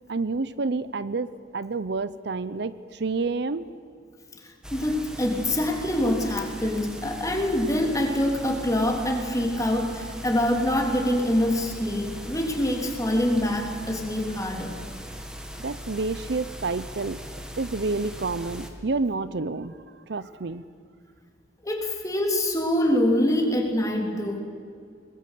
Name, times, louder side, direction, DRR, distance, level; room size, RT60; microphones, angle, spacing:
voice 1, 0.1-1.3 1.5-3.7 15.6-17.2 17.6-19.8 20.1-20.6, right 3 dB, 65° right, 15 dB, 0.7 m, -29 dB
sound 1, 4.6-18.7, equal, 5° right, 1.9 m, -39 dB
voice 2, 4.7-14.7 21.6-24.4, left 1 dB, 20° left, 1 dB, 3.5 m, -25 dB
22.0 x 20.5 x 8.4 m, 2.2 s
head